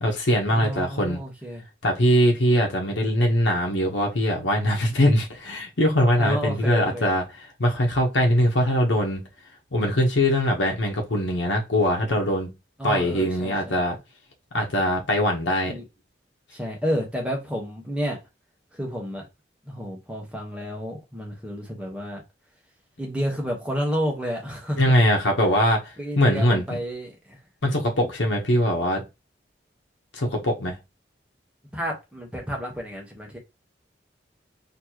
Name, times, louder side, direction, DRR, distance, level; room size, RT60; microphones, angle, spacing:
voice 1, 0.0-1.2 1.8-9.2 9.7-12.5 12.8-14.0 14.5-15.8 24.8-26.8 27.6-29.0 30.1-30.8, equal, 90° left, 1.1 m, -22 dB
voice 2, 0.5-1.6 6.2-7.1 12.8-13.5 15.6-15.8 16.5-18.2 18.8-19.2 19.7-22.2 23.0-24.8 25.4-25.5 26.0-27.4 31.7-33.4, equal, 5° right, 1.2 m, -30 dB
4.4 x 3.0 x 2.9 m
head